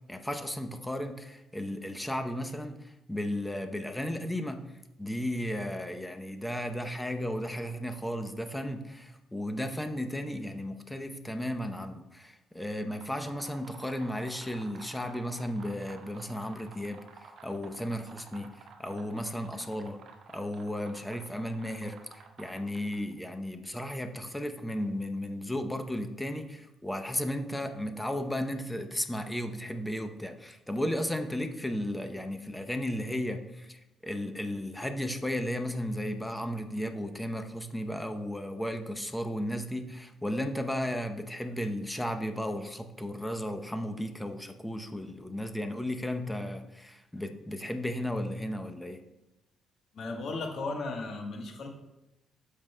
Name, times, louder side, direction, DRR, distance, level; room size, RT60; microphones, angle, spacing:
voice 1, 0.1-4.7 5.0-18.5 18.8-20.0 20.3-49.0, left 1 dB, 5° left, 6 dB, 0.7 m, -34 dB
sound 1, 12.9-23.1, right 5 dB, 65° right, 0.8 m, -52 dB
voice 2, 49.9-51.7, left 3 dB, 65° left, 3 dB, 1.2 m, -35 dB
13.0 x 5.2 x 2.2 m, 0.95 s
cardioid pair, 90°, 0 cm